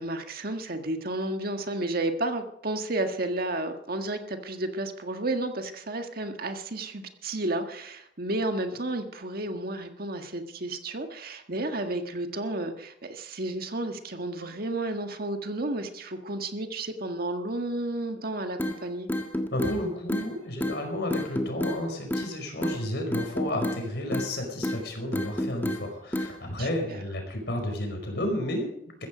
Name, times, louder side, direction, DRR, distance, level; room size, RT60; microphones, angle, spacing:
voice 1, 0.0-19.1 26.6-27.0, right 2 dB, 55° right, 6 dB, 1.7 m, -32 dB
sound 1, 18.6-18.8 19.1-19.8 20.1-20.3 20.6-20.8 21.1-21.8 22.1-22.3 22.6-22.8 23.1-23.8 24.1-24.3 24.6-24.8 25.1-25.8 26.1-26.3, left 1 dB, 10° left, 1.6 m, -29 dB
voice 2, 19.5-29.1, left 1 dB, 65° left, 4 dB, 5.1 m, -32 dB
14.5 x 14.5 x 5.1 m, 0.71 s
head